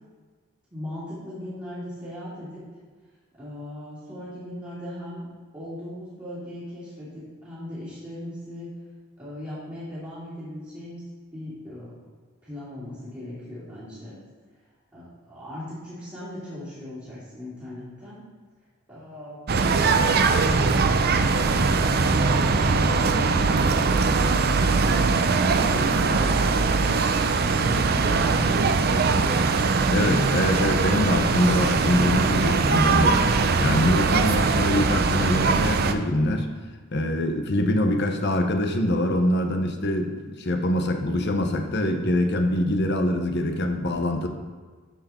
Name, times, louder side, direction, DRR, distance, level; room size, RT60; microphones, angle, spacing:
voice 1, 0.7-2.6 3.4-5.3 5.5-8.7 9.2-11.0 11.3-12.0 12.4-14.2 14.9-18.2 18.9-21.8 22.3-24.8 25.5-26.8 27.3-29.5, left 1 dB, 15° right, -14 dB, 3.1 m, -38 dB
sound 1, 19.5-35.9, right 4 dB, 45° right, 0.5 m, -21 dB
voice 2, 29.9-33.3 33.6-36.5 36.9-44.3, left 1 dB, 50° left, 5 dB, 0.9 m, -24 dB
13.0 x 4.8 x 4.4 m, 1.5 s
head